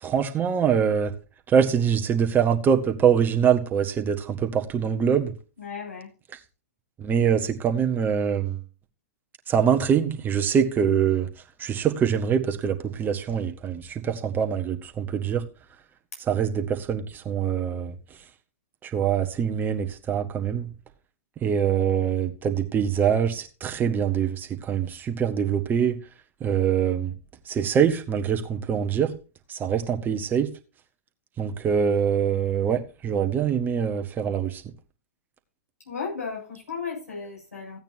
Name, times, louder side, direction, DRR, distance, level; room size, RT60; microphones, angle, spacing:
voice 1, 0.0-1.1 1.5-5.3 7.0-8.6 9.5-11.3 11.6-15.5 16.3-17.9 18.8-20.7 21.4-26.0 26.4-27.1 27.4-29.2 29.5-30.5 31.4-34.6, right 8 dB, 25° right, 1.5 m, -24 dB
voice 2, 5.6-6.1 35.8-37.8, left 5 dB, 90° left, 7.4 m, -35 dB
15.5 x 9.0 x 2.8 m
figure-of-eight pair, 105°, 8 cm